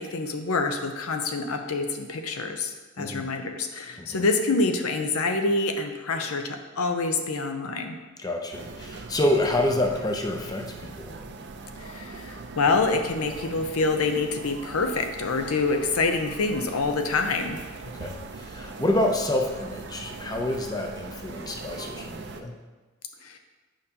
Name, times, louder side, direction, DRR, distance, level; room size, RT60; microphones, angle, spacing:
voice 1, 0.0-8.0 11.8-17.6 23.2-23.4, left 3 dB, 85° left, 5 dB, 0.6 m, -26 dB
voice 2, 3.0-3.3 4.0-4.2 8.2-11.2 17.9-22.5, left 1 dB, 20° left, 2 dB, 0.5 m, -28 dB
sound 1, 8.5-22.4, right 3 dB, 50° right, 0.5 m, -41 dB
8.9 x 5.3 x 2.8 m, 1.2 s
head